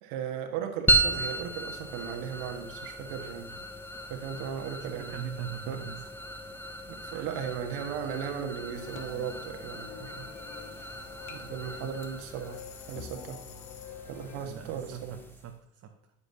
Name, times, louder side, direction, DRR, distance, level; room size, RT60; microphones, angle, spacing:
voice 1, 0.0-3.5 4.1-5.2 5.7-5.8 6.9-10.3 10.8-10.9 11.3-12.6 12.9-13.4 14.1-15.2, right 8 dB, 60° right, 5 dB, 1.5 m, -36 dB
sound 1, 0.9-15.5, right 2 dB, 5° left, 1.1 m, -35 dB
voice 2, 4.8-6.1 7.1-7.4 11.8-11.9 14.4-16.1, right 9 dB, 35° right, 4 dB, 1.0 m, -41 dB
sound 2, 8.7-14.5, left 8 dB, 50° left, 1.1 m, -46 dB
9.8 x 9.7 x 2.8 m, 0.74 s
figure-of-eight pair, 60°, 42 cm